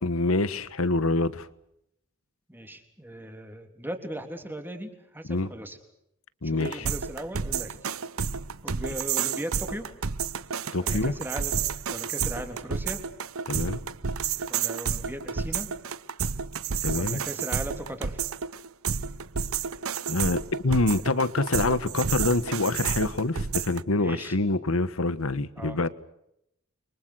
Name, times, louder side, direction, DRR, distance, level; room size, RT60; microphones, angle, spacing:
voice 1, 0.0-1.5 5.3-5.5 6.4-6.9 10.7-11.1 13.5-13.8 16.8-17.2 20.1-25.9, left 2 dB, 80° left, 1.5 m, -26 dB
voice 2, 2.5-5.8 6.4-7.8 8.6-9.9 10.8-11.6 11.9-13.0 14.5-15.7 16.9-18.2 24.0-24.4 25.6-25.9, right 1 dB, 10° right, 3.5 m, -38 dB
sound 1, 6.6-23.8, right 6 dB, 85° right, 0.9 m, -31 dB
30.0 x 24.5 x 6.5 m
head